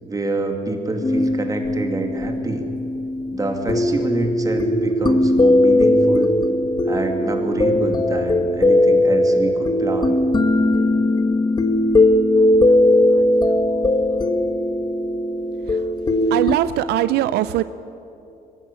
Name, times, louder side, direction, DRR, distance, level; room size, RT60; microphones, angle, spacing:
voice 1, 0.0-2.7 3.3-6.4 6.9-10.1, right 2 dB, 20° right, 4 dB, 2.5 m, -26 dB
sound 1, 1.0-16.6, left 1 dB, 25° left, 1.2 m, -18 dB
voice 2, 16.3-17.6, right 14 dB, 80° right, 14 dB, 0.5 m, -21 dB
22.5 x 12.5 x 10.0 m, 2.8 s
cardioid pair, 110°, 17 cm